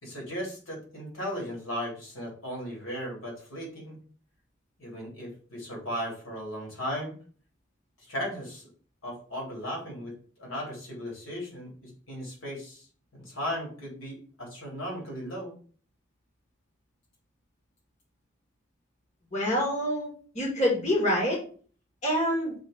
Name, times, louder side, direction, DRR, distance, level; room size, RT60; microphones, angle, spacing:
voice 1, 0.0-4.0 4.8-7.2 8.0-8.7 9.0-12.9 13.1-15.6, equal, 85° left, -2 dB, 3.3 m, -36 dB
voice 2, 19.3-20.1 20.4-21.4 22.0-22.5, equal, 35° left, -2 dB, 1.9 m, -26 dB
6.4 x 3.3 x 5.0 m, 0.43 s
head